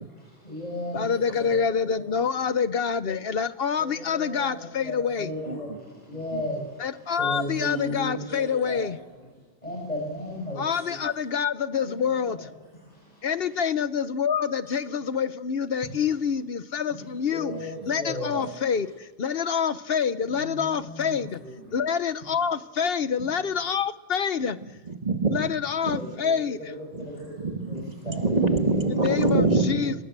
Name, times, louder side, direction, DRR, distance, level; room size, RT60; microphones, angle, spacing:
voice 1, 0.2-1.1 1.4-1.6 1.9-2.0 3.8-6.9 7.2-8.9 9.6-11.0 11.8-13.3 16.9-17.0 17.3-18.5 20.3-21.8 26.0-28.4, left 1 dB, 40° left, -3 dB, 5.9 m, -36 dB
voice 2, 0.9-5.3 6.8-9.0 10.6-12.5 13.2-21.4 21.7-24.6 25.3-26.7 29.0-29.9, left 7 dB, 65° left, 13 dB, 1.1 m, -27 dB
voice 3, 5.5-5.8 6.3-6.4 17.5-17.9 24.9-25.5 25.8-26.0 26.9-27.1 27.4-30.0, right 3 dB, 40° right, 5 dB, 2.1 m, -25 dB
23.0 x 21.0 x 7.6 m, 1.2 s
omnidirectional pair, 1.1 m